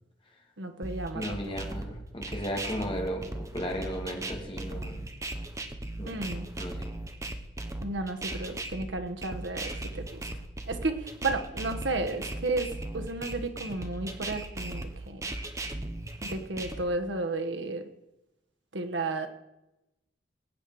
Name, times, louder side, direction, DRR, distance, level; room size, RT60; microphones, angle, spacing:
voice 1, 0.6-1.2 6.1-6.5 7.8-10.2 10.7-15.2 16.2-17.8 18.7-19.3, right 2 dB, 85° right, 7 dB, 1.3 m, -33 dB
sound 1, 0.8-16.8, right 2 dB, 15° right, 0.8 m, -37 dB
voice 2, 1.1-5.1 6.0-6.1 6.6-6.9, equal, 30° left, 1 dB, 2.1 m, -35 dB
19.5 x 8.6 x 4.8 m, 0.93 s
head